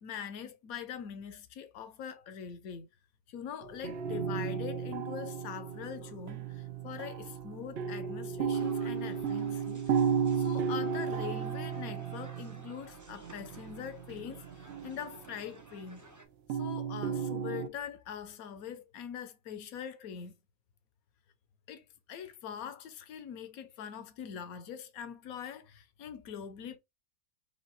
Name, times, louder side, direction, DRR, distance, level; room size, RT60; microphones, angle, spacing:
voice 1, 0.0-2.9 3.3-10.1 10.4-14.4 14.8-16.0 16.5-20.4 21.7-21.8 22.1-26.8, left 8 dB, 65° left, 1.2 m, -43 dB
sound 1, 3.6-15.4 16.5-17.7, right 7 dB, 70° right, 0.6 m, -34 dB
sound 2, 8.5-16.3, right 2 dB, 20° right, 0.4 m, -55 dB
5.4 x 2.4 x 4.0 m
omnidirectional pair, 1.7 m